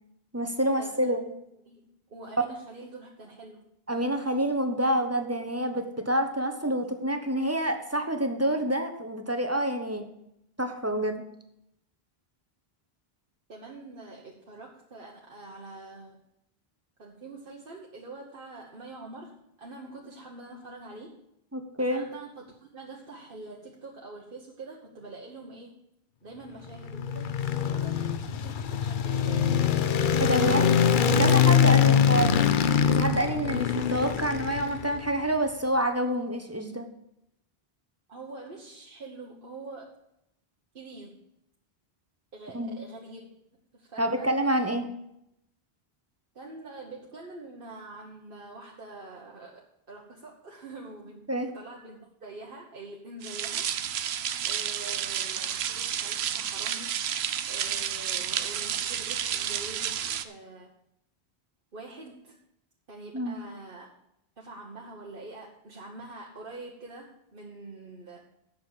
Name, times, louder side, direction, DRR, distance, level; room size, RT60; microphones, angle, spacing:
voice 1, 0.3-1.2 3.9-10.0 10.6-11.2 21.5-22.1 30.1-30.8 31.2-32.5 32.9-36.9 42.5-42.8 44.0-44.9 51.3-51.5 63.1-63.4, right 1 dB, 15° right, 6 dB, 1.0 m, -27 dB
voice 2, 1.6-3.7 13.5-16.2 17.0-21.1 21.8-25.7 26.2-27.3 27.7-29.5 31.8-32.0 38.1-40.0 40.7-41.2 42.3-43.3 43.7-44.3 46.3-53.7 54.0-57.0 57.4-60.7 61.7-62.3 62.9-63.9 64.4-68.2, right 2 dB, 60° right, -2 dB, 1.4 m, -45 dB
sound 1, 26.7-35.1, left 7 dB, 55° left, 0.7 m, -23 dB
sound 2, 53.2-60.2, right 9 dB, 90° right, 0.9 m, -31 dB
8.0 x 6.5 x 8.3 m, 0.80 s
omnidirectional pair, 1.0 m